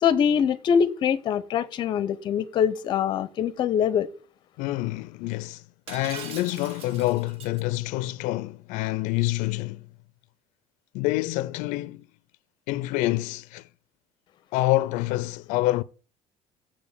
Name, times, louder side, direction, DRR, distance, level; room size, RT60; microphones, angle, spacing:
voice 1, 0.0-4.1, left 8 dB, 40° left, 0.6 m, -23 dB
voice 2, 4.6-9.9 10.9-12.0 12.7-13.7 14.5-15.8, left 17 dB, 80° left, 0.4 m, -27 dB
Shatter, 5.9-7.6, right 6 dB, 50° right, 1.1 m, -41 dB
7.4 x 5.0 x 6.5 m
cardioid pair, 180°, 13 cm